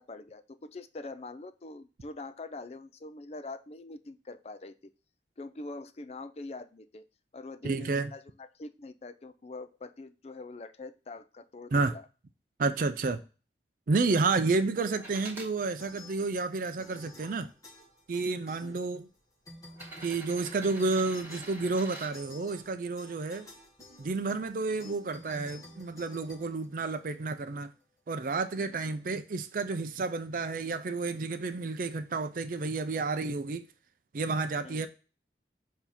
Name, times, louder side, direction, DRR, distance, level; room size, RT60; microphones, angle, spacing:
voice 1, 0.0-4.7 5.4-7.1 7.3-12.1 18.6-18.9 24.8-25.0 34.6-34.9, left 2 dB, 35° left, 0.4 m, -44 dB
voice 2, 7.6-8.1 11.7-12.0 12.6-13.2 13.9-17.5 18.1-19.1 20.0-23.5 24.0-27.7 28.1-33.6 34.1-34.9, right 3 dB, 50° right, 0.4 m, -30 dB
sound 1, 14.9-15.5 16.3-17.3 18.3-18.4 19.7-22.1 24.0-24.1, right 1 dB, 10° right, 2.0 m, -46 dB
sound 2, 15.8-16.5 16.8-19.2 19.4-27.3, left 1 dB, 20° left, 1.3 m, -51 dB
7.0 x 2.8 x 5.6 m
head